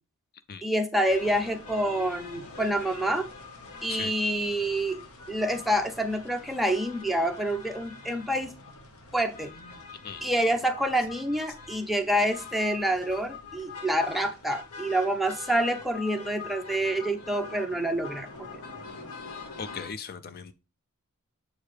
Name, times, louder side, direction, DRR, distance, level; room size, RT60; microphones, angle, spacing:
voice 1, 0.6-3.3 3.8-5.0 5.3-8.5 9.1-9.5 10.2-18.5, right 1 dB, ahead, 0.7 m, -27 dB
sound 1, 1.1-19.9, left 4 dB, 70° left, 1.3 m, -44 dB
voice 2, 19.6-20.5, left 6 dB, 45° left, 0.4 m, -38 dB
7.2 x 4.6 x 3.2 m
head